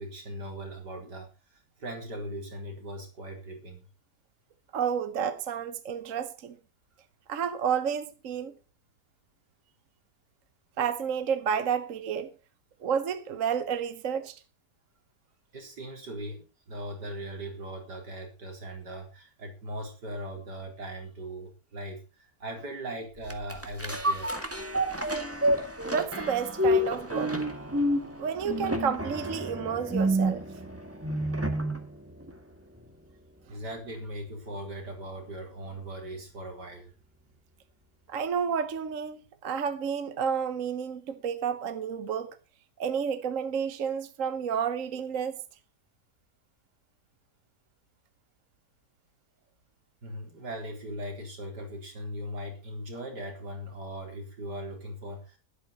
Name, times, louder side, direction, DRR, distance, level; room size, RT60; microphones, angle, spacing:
voice 1, 0.0-3.9 15.5-24.3 33.5-36.9 50.0-55.4, right 1 dB, 80° right, 4.5 m, -39 dB
voice 2, 4.7-6.6 7.3-8.5 10.8-12.3 12.8-14.4 25.9-27.4 28.2-30.4 38.1-42.4 42.8-45.4, right 7 dB, 55° right, 1.3 m, -30 dB
sound 1, 23.3-31.9 32.3-32.4, equal, 10° right, 1.8 m, -29 dB
12.0 x 11.5 x 5.3 m
omnidirectional pair, 1.8 m